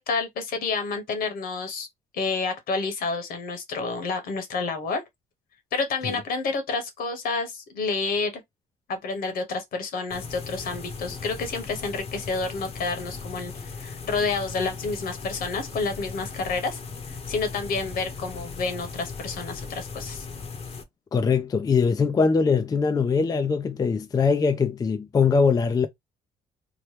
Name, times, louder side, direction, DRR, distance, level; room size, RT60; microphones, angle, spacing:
voice 1, 0.0-1.9 2.1-5.0 5.7-8.3 8.9-16.8 17.3-20.2, left 4 dB, 60° left, 1.1 m, -29 dB
sound 1, 10.1-20.8, left 4 dB, 35° left, 0.8 m, -38 dB
voice 2, 21.1-25.9, left 5 dB, 20° left, 0.4 m, -22 dB
2.9 x 2.1 x 3.2 m
cardioid pair, 110°, 17 cm